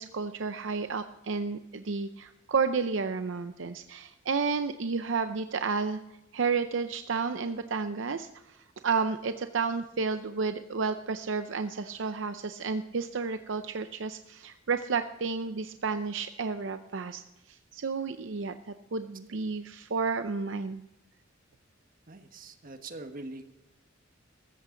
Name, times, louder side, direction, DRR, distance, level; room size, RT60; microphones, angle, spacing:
voice 1, 0.0-6.0 6.3-17.2 17.5-20.8, right 5 dB, 70° right, 9 dB, 0.6 m, -31 dB
voice 2, 22.1-23.5, right 2 dB, 45° right, 7 dB, 1.3 m, -43 dB
14.0 x 14.0 x 3.8 m, 0.91 s
head